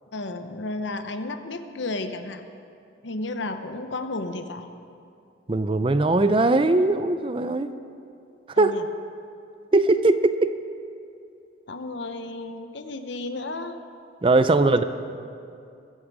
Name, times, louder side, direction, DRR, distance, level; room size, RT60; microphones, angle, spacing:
voice 1, 0.1-2.4 3.0-4.7 8.6-8.9 11.7-13.8 14.5-14.6, left 2 dB, 75° left, 8 dB, 0.9 m, -33 dB
voice 2, 5.5-7.7 8.6-8.7 9.7-10.5 14.2-14.8, right 2 dB, 25° right, 11 dB, 0.4 m, -20 dB
22.0 x 8.8 x 4.8 m, 2.5 s
head